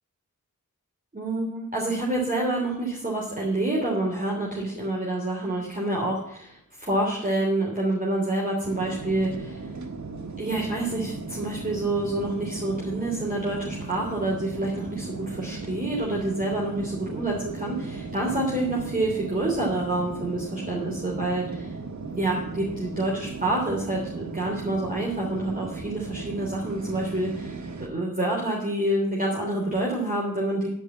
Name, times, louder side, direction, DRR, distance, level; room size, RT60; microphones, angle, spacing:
voice 1, 1.1-9.7 10.4-21.7 22.1-30.7, right 1 dB, 25° right, -4 dB, 3.3 m, -27 dB
sound 1, 8.6-27.9, right 3 dB, 60° right, 1.5 m, -37 dB
11.0 x 5.4 x 8.4 m, 0.71 s
cardioid pair, 50°, 32 cm